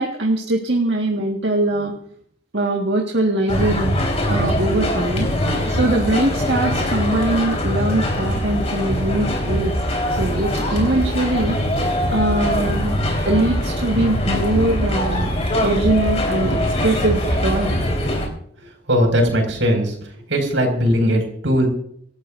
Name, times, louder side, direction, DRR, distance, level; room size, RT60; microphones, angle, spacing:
voice 1, 0.0-1.9 2.5-4.0 4.3-5.3 5.7-9.7 10.2-11.6 12.1-13.0 13.3-15.3 15.6-17.8, right 2 dB, 70° right, 0 dB, 1.7 m, -21 dB
sound 1, 3.5-18.3, left 1 dB, 35° left, 4.4 m, -22 dB
voice 2, 18.9-19.9 20.3-21.7, equal, 85° right, 3 dB, 5.7 m, -18 dB
26.5 x 13.0 x 2.6 m, 0.66 s
head